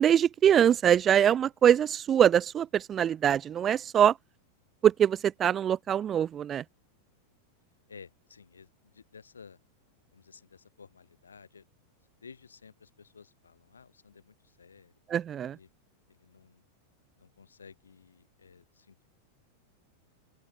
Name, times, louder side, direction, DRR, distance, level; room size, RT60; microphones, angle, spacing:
voice 1, 0.0-4.2 4.8-6.6 15.1-15.6, right 9 dB, 25° right, 0.4 m, -23 dB
voice 2, 7.9-9.6 10.1-11.7 12.0-14.9 15.4-15.7 16.1-16.6 17.2-19.1, left 5 dB, 75° left, 3.1 m, -54 dB
open air
figure-of-eight pair, 90°, 0 cm